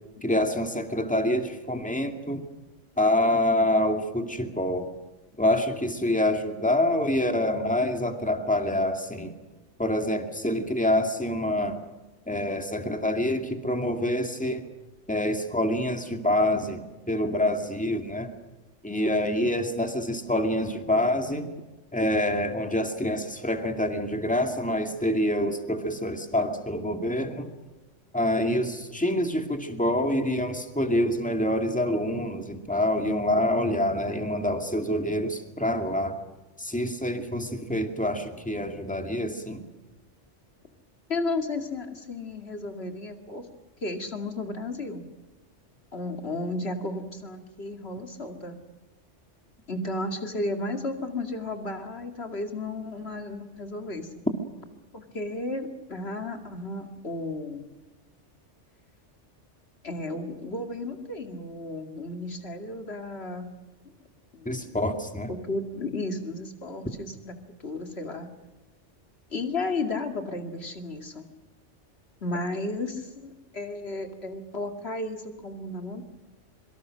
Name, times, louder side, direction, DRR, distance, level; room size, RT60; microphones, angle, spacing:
voice 1, 0.2-2.4 3.0-4.9 5.4-9.3 9.8-11.8 12.3-14.6 15.1-18.3 18.8-21.5 21.9-27.5 28.1-36.2 36.6-39.6 64.5-65.3, left 1 dB, 5° left, 5 dB, 2.2 m, -26 dB
voice 2, 41.1-43.5 43.8-45.0 45.9-48.6 49.7-54.1 54.9-57.7 59.8-63.5 64.3-64.8 65.3-67.3 67.6-68.3 69.3-71.2 72.2-76.0, left 2 dB, 60° left, 5 dB, 2.7 m, -33 dB
26.0 x 24.0 x 6.4 m, 1.1 s
omnidirectional pair, 1.2 m